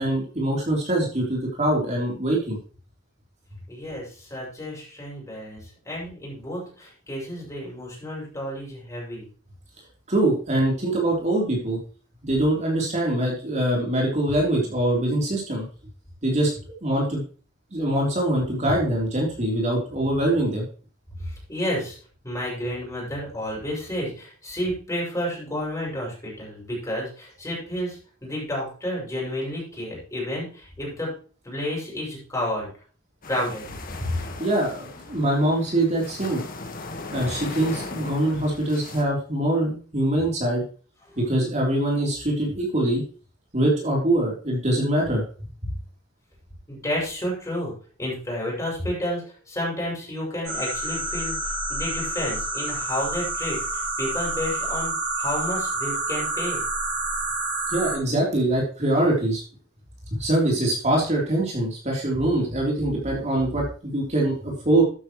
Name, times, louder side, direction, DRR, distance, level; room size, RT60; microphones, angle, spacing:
voice 1, 0.0-2.6 10.1-11.8 12.2-15.6 16.2-16.5 16.8-17.2 17.7-20.6 34.4-36.4 37.1-40.6 41.2-43.0 43.5-45.2 57.7-59.4 60.2-64.8, right 1 dB, 35° right, -3 dB, 3.7 m, -23 dB
voice 2, 3.7-9.2 21.2-22.0 22.2-31.1 31.4-32.7 33.3-33.7 34.0-34.2 41.1-41.2 46.7-47.7 48.0-56.6, left 1 dB, 15° left, -4 dB, 6.9 m, -31 dB
sound 1, 33.2-39.0, left 3 dB, 45° left, 1.6 m, -38 dB
sound 2, 50.4-58.0, right 2 dB, 55° right, 6.7 m, -28 dB
12.5 x 9.9 x 3.2 m, 0.40 s
head